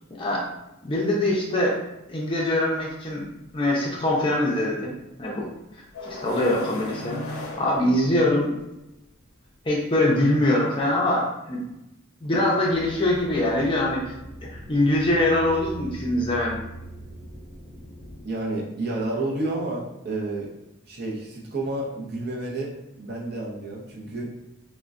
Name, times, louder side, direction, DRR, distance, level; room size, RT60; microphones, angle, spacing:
voice 1, 0.8-1.8 2.1-3.3 3.5-4.9 5.2-5.5 6.0-8.5 9.7-11.6 12.2-14.1 14.7-16.6, left 1 dB, 25° left, -3 dB, 0.5 m, -23 dB
sound 1, 5.9-8.6, left 2 dB, 75° left, 0.5 m, -36 dB
sound 2, 12.7-18.2, right 1 dB, 5° left, 1.2 m, -41 dB
voice 2, 18.2-20.5 20.9-22.7 23.0-24.3, right 2 dB, 45° right, -3 dB, 0.6 m, -30 dB
3.6 x 2.1 x 2.4 m, 0.91 s
head